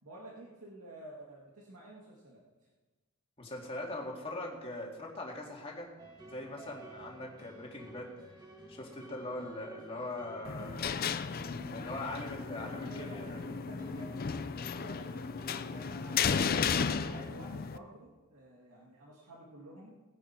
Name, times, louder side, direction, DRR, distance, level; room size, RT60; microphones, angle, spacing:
voice 1, 0.0-2.5 9.4-9.5 11.8-11.9 12.5-19.9, right 1 dB, 75° right, -3 dB, 2.1 m, -51 dB
voice 2, 3.4-5.9 6.2-8.1 8.7-11.0 11.7-13.4, left 2 dB, 25° left, -2 dB, 2.2 m, -41 dB
sound 1, 6.0-17.3, equal, 20° right, 1.8 m, -52 dB
sound 2, 10.4-17.8, left 6 dB, 40° left, 0.5 m, -34 dB
19.0 x 10.0 x 4.5 m, 1.2 s
head